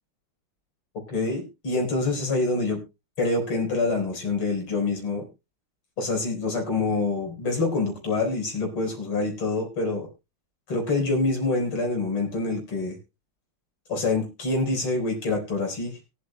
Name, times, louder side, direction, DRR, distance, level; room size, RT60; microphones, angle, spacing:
voice 1, 1.1-2.8 3.2-5.3 6.0-10.1 10.7-13.0 13.9-16.1, left 3 dB, 90° left, 2 dB, 5.2 m, -26 dB
23.5 x 8.3 x 2.2 m, 0.26 s
omnidirectional pair, 2.3 m